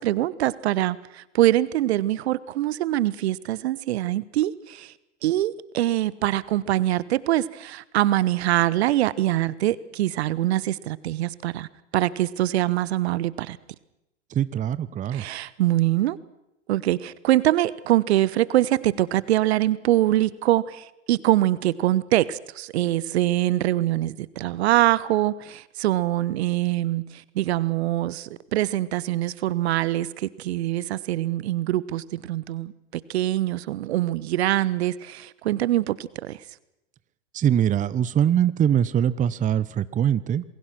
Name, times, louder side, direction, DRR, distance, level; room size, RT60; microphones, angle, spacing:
voice 1, 0.0-4.9 5.2-11.7 11.9-13.6 15.1-16.2 16.7-36.4, right 14 dB, 65° right, 19 dB, 1.2 m, -24 dB
voice 2, 14.3-15.2 37.3-40.4, right 9 dB, 20° right, 17 dB, 0.8 m, -22 dB
28.0 x 21.5 x 6.1 m, 0.85 s
hypercardioid pair, 95°, 35 cm